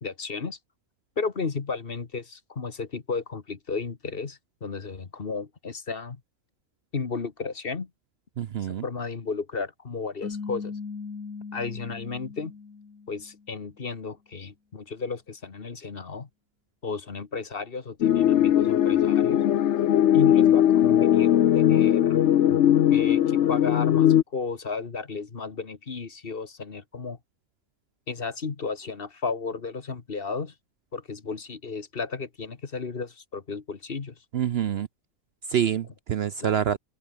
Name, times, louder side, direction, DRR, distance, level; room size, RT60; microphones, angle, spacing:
voice 1, 0.0-0.6 1.2-6.2 6.9-7.9 8.8-10.7 11.5-12.5 13.1-16.3 16.8-19.4 20.1-22.2 22.9-27.2 28.1-30.5 30.9-34.1 36.4-36.6, left 4 dB, 45° left, 1.6 m, -33 dB
voice 2, 8.4-8.8 34.3-34.9 35.5-36.8, right 9 dB, 60° right, 0.8 m, -26 dB
sound 1, 10.2-13.5, left 5 dB, 85° left, 2.6 m, -38 dB
sound 2, 18.0-24.2, left 11 dB, 65° left, 1.0 m, -19 dB
omnidirectional pair, 1.4 m